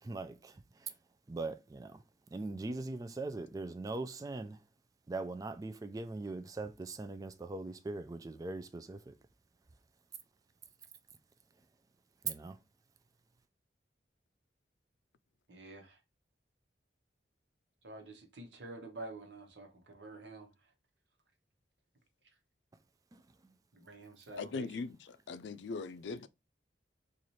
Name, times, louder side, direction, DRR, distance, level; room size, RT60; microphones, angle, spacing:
voice 1, 0.0-0.9 1.3-2.0 2.3-4.6 5.1-9.2 12.2-12.6 23.1-23.6, right 3 dB, 20° right, 0.3 m, -41 dB
voice 2, 15.5-16.0 17.8-20.5 23.7-24.8, right 2 dB, 80° right, 1.0 m, -48 dB
voice 3, 24.3-26.3, left 4 dB, 85° left, 0.4 m, -40 dB
3.1 x 2.5 x 4.0 m
head